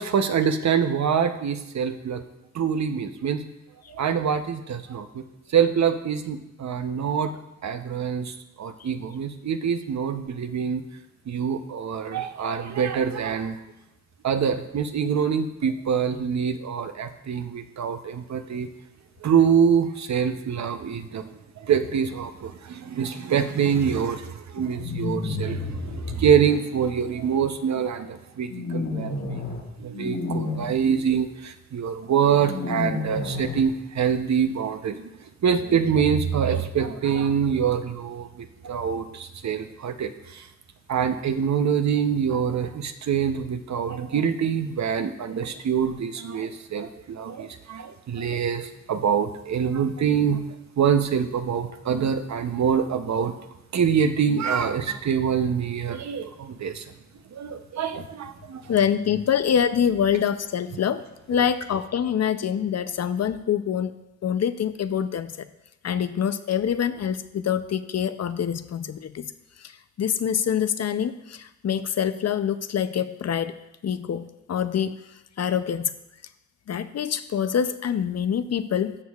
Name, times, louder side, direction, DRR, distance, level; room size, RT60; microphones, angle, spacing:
voice 1, 0.0-2.2 2.5-3.5 3.9-5.2 5.5-10.8 11.3-13.6 14.2-18.7 19.2-29.5 29.8-35.1 35.4-40.5 40.9-50.4 50.8-53.3 53.7-56.8 57.3-58.7, right 7 dB, 60° right, 9 dB, 0.7 m, -25 dB
sound 1, 24.7-26.2 28.5-29.6 29.9-30.6 32.4-33.6, left 2 dB, 70° left, 1.7 m, -30 dB
voice 2, 58.7-63.9 64.2-65.5 65.8-69.3 69.6-69.7 70.0-73.5 73.8-75.0 75.4-75.9 76.7-79.0, left 8 dB, 55° left, 12 dB, 0.5 m, -25 dB
13.0 x 6.3 x 2.4 m, 0.92 s
cardioid pair, 50°, 32 cm